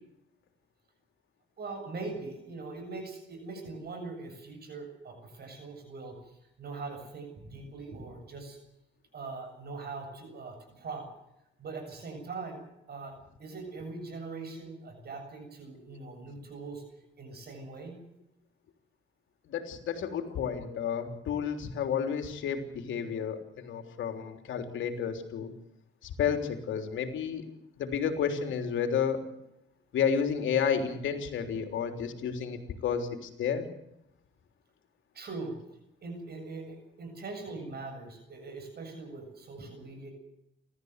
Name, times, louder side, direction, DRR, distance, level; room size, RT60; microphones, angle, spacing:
voice 1, 1.6-8.6 9.1-11.1 11.6-12.6 12.9-13.1 13.4-16.8 17.2-18.0 31.5-31.6 35.1-35.6 36.0-40.1, right 3 dB, 55° right, 5 dB, 7.3 m, -41 dB
voice 2, 19.5-25.5 26.0-27.4 27.8-29.3 29.9-33.7, left 7 dB, 75° left, 6 dB, 3.6 m, -31 dB
29.0 x 14.0 x 8.2 m, 0.83 s
cardioid pair, 90°, 20 cm